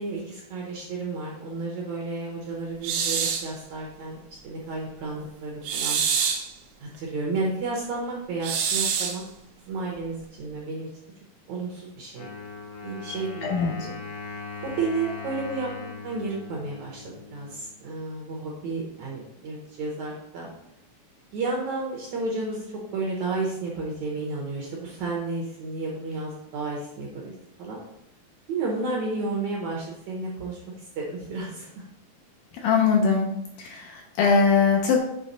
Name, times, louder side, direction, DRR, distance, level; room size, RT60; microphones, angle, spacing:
voice 1, 0.0-4.2 4.4-6.0 6.8-9.2 9.7-10.9 11.5-12.3 12.8-13.9 14.6-20.5 21.3-27.3 27.6-27.8 28.5-31.9, right 3 dB, 70° right, -2 dB, 1.8 m, -32 dB
sound 1, 2.8-3.5 5.6-6.5 8.4-9.2, right 7 dB, 85° right, 2.6 m, -26 dB
Wind instrument woodwind instrument, 12.2-17.8, left 4 dB, 60° left, 1.4 m, -39 dB
voice 2, 13.4-13.8 32.5-33.3 33.6-35.0, left 5 dB, 75° left, 1 dB, 2.0 m, -21 dB
7.1 x 3.3 x 4.1 m, 0.81 s
omnidirectional pair, 4.2 m